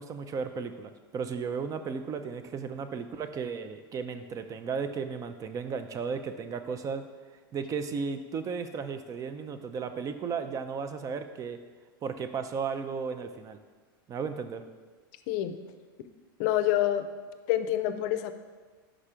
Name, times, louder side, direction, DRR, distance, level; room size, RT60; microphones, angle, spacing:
voice 1, 0.0-7.0 7.5-11.6 12.0-13.6 14.1-14.6, right 5 dB, 30° right, 9 dB, 0.4 m, -34 dB
voice 2, 16.4-17.1 17.5-18.3, left 12 dB, 60° left, 10 dB, 0.5 m, -27 dB
5.0 x 4.3 x 4.9 m, 1.4 s
hypercardioid pair, 105°, 12 cm